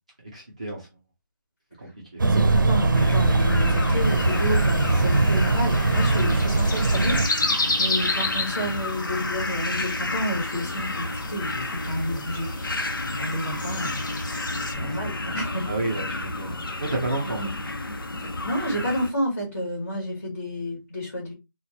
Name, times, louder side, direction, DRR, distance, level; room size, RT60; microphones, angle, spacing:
voice 1, 0.3-0.9 1.8-2.2 14.8-15.3 15.7-17.4, right 2 dB, 20° right, 0.5 m, -31 dB
voice 2, 2.2-12.5 13.2-14.0 14.7-15.7 17.2-17.5 18.2-21.3, equal, 40° left, 2.2 m, -30 dB
sound 1, 2.2-7.3, right 3 dB, 65° right, 0.6 m, -21 dB
sound 2, 2.9-19.1, left 2 dB, 85° left, 0.7 m, -31 dB
sound 3, 4.0-14.7, left 2 dB, 60° left, 1.1 m, -32 dB
4.1 x 2.2 x 2.8 m
figure-of-eight pair, 175°, 11 cm